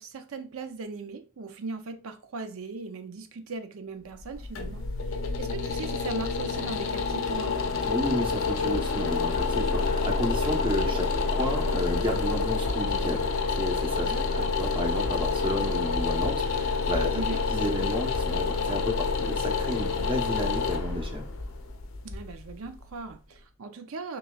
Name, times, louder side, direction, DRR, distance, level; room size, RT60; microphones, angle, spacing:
voice 1, 0.0-7.6 14.0-14.5 17.1-17.4 22.0-24.2, right 4 dB, 90° right, 7 dB, 0.5 m, -39 dB
sound 1, 4.2-23.1, left 4 dB, 70° left, 0.6 m, -28 dB
voice 2, 7.8-17.2 17.5-21.3, equal, 25° right, 2 dB, 0.9 m, -32 dB
5.8 x 3.1 x 2.3 m, 0.37 s
head